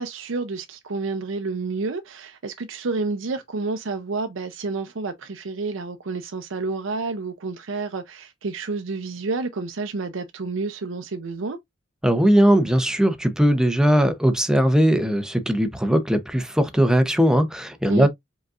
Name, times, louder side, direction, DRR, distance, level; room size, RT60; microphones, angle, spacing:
voice 1, 0.0-11.6 17.9-18.1, right 3 dB, 70° right, 0.6 m, -29 dB
voice 2, 12.0-18.1, equal, 5° right, 0.7 m, -19 dB
5.1 x 3.9 x 2.4 m
head